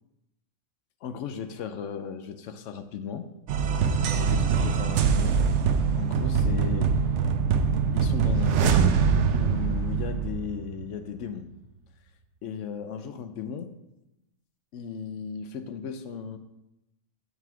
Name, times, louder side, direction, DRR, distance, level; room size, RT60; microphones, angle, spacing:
voice 1, 1.0-3.3 4.2-5.5 6.0-7.0 7.9-8.9 9.3-11.5 12.4-13.7 14.7-16.4, left 7 dB, 70° left, 9 dB, 0.9 m, -36 dB
sound 1, 3.5-11.0, right 6 dB, 65° right, 0.8 m, -23 dB
6.9 x 4.1 x 5.8 m, 0.91 s
omnidirectional pair, 1.4 m